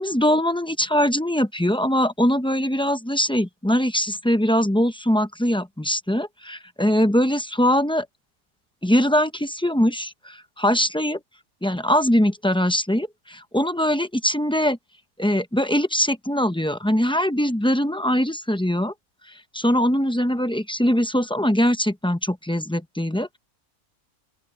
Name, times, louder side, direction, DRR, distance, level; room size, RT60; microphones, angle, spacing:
voice 1, 0.0-8.1 8.8-11.2 11.6-14.8 15.2-18.9 19.5-23.4, equal, 5° left, 0.4 m, -22 dB
open air
omnidirectional pair, 1.5 m